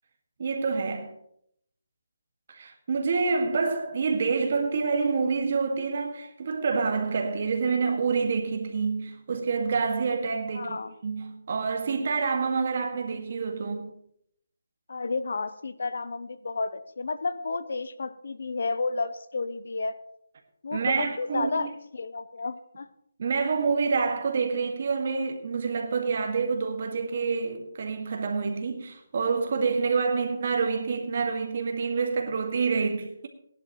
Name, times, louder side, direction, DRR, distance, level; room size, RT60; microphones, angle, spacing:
voice 1, 0.4-1.1 2.5-10.8 11.0-13.9 20.7-21.7 23.2-33.3, right 5 dB, 45° right, 1.9 m, -27 dB
voice 2, 10.5-10.9 14.9-19.9 20.6-22.9, left 3 dB, 60° left, 0.7 m, -31 dB
17.0 x 11.0 x 3.1 m
hypercardioid pair, 170°, 0 cm